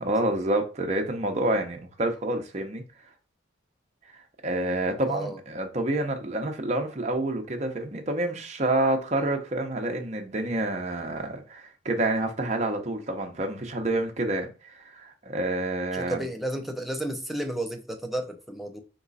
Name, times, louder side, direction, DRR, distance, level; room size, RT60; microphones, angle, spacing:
voice 1, 0.0-2.8 4.4-16.3, right 1 dB, 35° right, 0.7 m, -28 dB
voice 2, 5.0-5.4 15.9-18.8, right 1 dB, ahead, 0.5 m, -32 dB
3.6 x 3.0 x 4.0 m
head